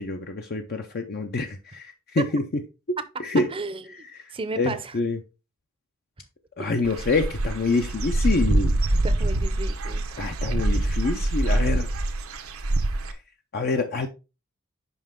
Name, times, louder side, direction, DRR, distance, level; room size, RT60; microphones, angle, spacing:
voice 1, 0.0-2.4 3.2-3.5 4.6-5.2 6.6-8.8 10.2-11.9 13.1-13.2 13.5-14.1, left 3 dB, 45° left, 0.6 m, -26 dB
voice 2, 3.5-5.0 6.6-6.7 9.0-10.3, right 3 dB, 25° right, 0.6 m, -34 dB
Dog / Bird, 6.8-13.1, right 1 dB, 85° right, 0.9 m, -25 dB
5.5 x 5.4 x 3.7 m
head